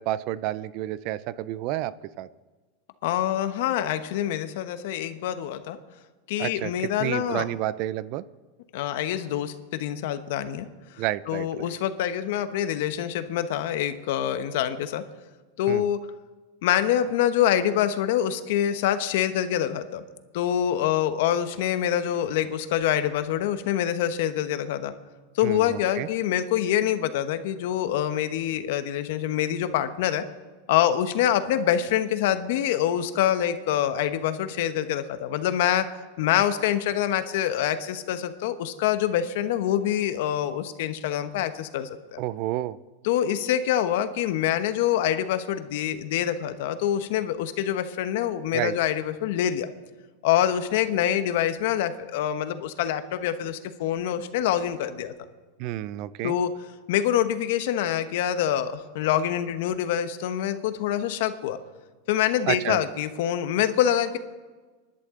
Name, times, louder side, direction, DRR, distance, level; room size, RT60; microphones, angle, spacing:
voice 1, 0.0-2.3 6.4-8.2 11.0-11.7 15.7-15.9 25.4-26.1 42.2-42.8 48.5-48.7 55.6-56.4 62.5-62.8, right 14 dB, 50° right, 18 dB, 0.5 m, -30 dB
voice 2, 3.0-5.8 6.3-7.4 8.7-10.7 11.3-15.0 15.6-16.0 16.6-20.0 20.3-24.9 25.3-30.2 30.7-35.9 36.2-42.2 43.0-49.7 50.2-55.1 56.2-56.5 56.9-61.6 62.1-64.2, left 10 dB, 65° left, 10 dB, 1.0 m, -25 dB
24.5 x 11.5 x 3.8 m, 1.3 s
supercardioid pair, 145°, 0 cm